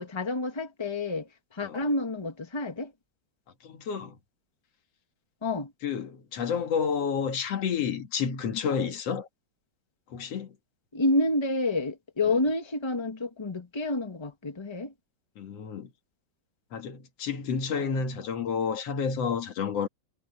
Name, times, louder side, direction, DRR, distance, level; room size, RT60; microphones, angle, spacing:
voice 1, 0.0-2.9 5.4-5.7 10.9-14.9, left 2 dB, 15° left, 1.2 m, -29 dB
voice 2, 3.6-4.2 5.8-9.3 10.1-10.6 15.4-15.9 16.7-19.9, left 6 dB, 60° left, 2.7 m, -30 dB
omnidirectional pair, 3.3 m